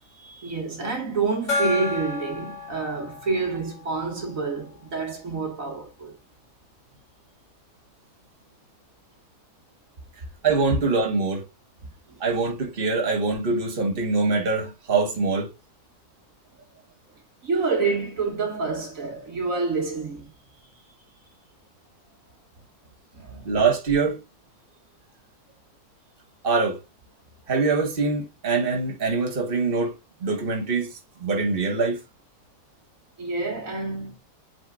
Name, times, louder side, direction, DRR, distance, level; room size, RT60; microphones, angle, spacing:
voice 1, 0.2-6.1 12.1-12.2 17.4-20.3 23.2-23.5 33.2-34.2, right 4 dB, 55° right, 2.2 m, -28 dB
Gong, 1.5-4.7, left 2 dB, 30° left, 4.6 m, -31 dB
voice 2, 10.4-11.4 12.2-15.5 23.5-24.2 26.4-26.8 27.5-29.9 30.2-30.9 31.2-32.0, right 4 dB, 35° right, 1.8 m, -23 dB
8.5 x 4.8 x 2.5 m
omnidirectional pair, 1.7 m